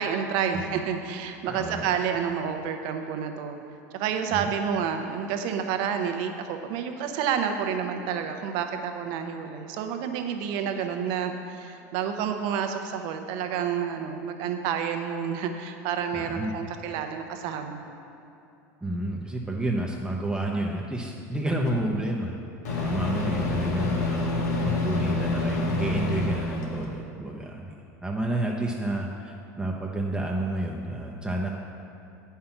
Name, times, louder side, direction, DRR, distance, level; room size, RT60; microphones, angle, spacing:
voice 1, 0.0-3.6 3.9-17.8, right 7 dB, 65° right, 6 dB, 0.9 m, -29 dB
voice 2, 1.5-1.9 4.3-4.5 16.1-16.5 18.8-22.3 22.7-27.7 28.0-31.5, right 1 dB, 10° right, -1 dB, 0.8 m, -30 dB
Microwave oven, 21.6-21.7 22.6-26.9, left 2 dB, 90° left, 1.4 m, -27 dB
8.5 x 5.7 x 5.9 m, 2.9 s
hypercardioid pair, 95°, 9 cm